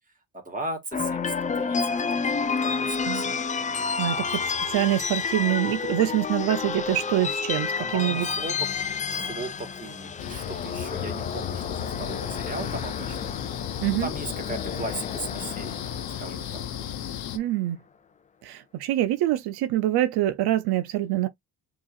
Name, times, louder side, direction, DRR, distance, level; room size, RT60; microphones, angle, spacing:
voice 1, 0.3-2.1 2.3-3.3 7.8-8.7 9.1-13.3 14.0-15.8 16.2-16.6, right 2 dB, 20° right, 1.9 m, -37 dB
sound 1, 0.9-17.1, left 5 dB, 20° left, 0.3 m, -30 dB
voice 2, 4.0-8.3 13.8-14.1 17.3-17.8 18.4-21.3, right 14 dB, 85° right, 0.6 m, -25 dB
sound 2, 10.2-17.4, left 9 dB, 70° left, 0.9 m, -34 dB
7.2 x 2.9 x 2.4 m
cardioid pair, 110°, 37 cm